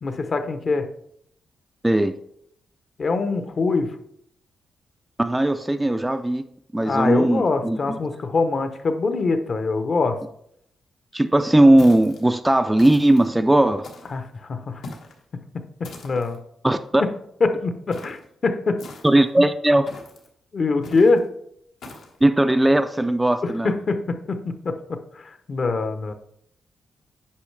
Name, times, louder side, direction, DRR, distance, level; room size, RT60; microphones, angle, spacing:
voice 1, 0.0-0.9 3.0-3.9 6.8-10.2 14.1-14.8 15.8-16.4 17.0-17.1 17.4-18.8 19.4-19.5 20.5-21.3 23.4-26.1, left 3 dB, 45° left, 8 dB, 0.7 m, -23 dB
voice 2, 1.8-2.2 5.2-6.4 6.7-8.0 11.1-13.9 16.6-17.0 19.0-19.9 22.2-23.7, right 1 dB, 10° right, 8 dB, 0.3 m, -18 dB
sound 1, 11.8-12.2 12.8-13.3 13.8-14.2 14.8-15.2 15.8-16.4 17.9-18.2 18.8-19.3 19.9-20.3 20.8-21.2 21.8-22.2, left 2 dB, 80° left, 1.3 m, -41 dB
8.4 x 5.4 x 3.2 m, 0.72 s
cardioid pair, 105°, 0 cm